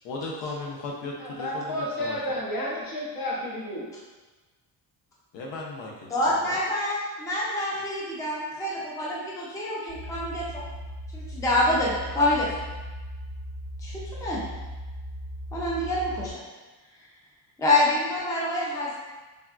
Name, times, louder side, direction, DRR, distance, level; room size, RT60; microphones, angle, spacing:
voice 1, 0.0-2.4 5.3-6.6, left 3 dB, 90° left, -1 dB, 0.8 m, -36 dB
voice 2, 1.2-3.9, left 1 dB, 55° left, -5 dB, 0.9 m, -31 dB
voice 3, 6.1-10.6 11.1-12.5 13.8-14.4 15.5-16.4 17.6-19.0, left 1 dB, 10° left, -6 dB, 0.4 m, -26 dB
sound 1, 9.9-16.3, equal, 40° right, 0.6 m, -38 dB
3.5 x 2.2 x 2.4 m, 1.2 s
cardioid pair, 130°, 43 cm